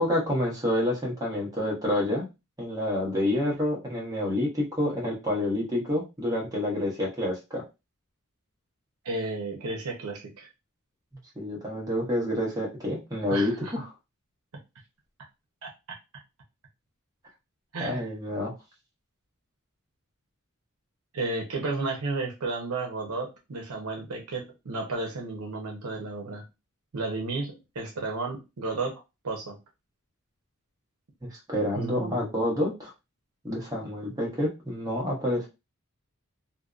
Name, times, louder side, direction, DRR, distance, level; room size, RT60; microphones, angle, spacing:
voice 1, 0.0-2.3 2.6-7.6 11.3-13.9 17.8-18.5 31.2-32.9 33.4-35.5, left 1 dB, 15° right, -2 dB, 0.9 m, -28 dB
voice 2, 9.0-10.5 13.3-13.7 15.6-15.7 17.7-18.0 21.1-26.5 26.9-29.6 31.7-32.2, right 3 dB, 75° right, 0 dB, 0.7 m, -33 dB
2.5 x 2.0 x 2.4 m, 0.25 s
head